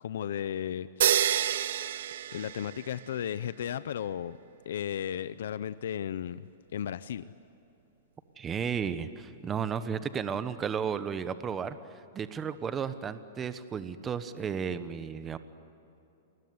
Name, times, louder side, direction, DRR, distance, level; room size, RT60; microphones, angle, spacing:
voice 1, 0.0-1.5 2.3-4.4 4.7-7.3, left 9 dB, 75° left, 15 dB, 0.6 m, -35 dB
sound 1, 1.0-3.1, right 10 dB, 70° right, 0.8 m, -28 dB
voice 2, 8.4-11.8 12.1-15.4, right 7 dB, 20° right, 12 dB, 1.0 m, -33 dB
28.5 x 20.5 x 9.6 m, 2.8 s
hypercardioid pair, 150°, 0 cm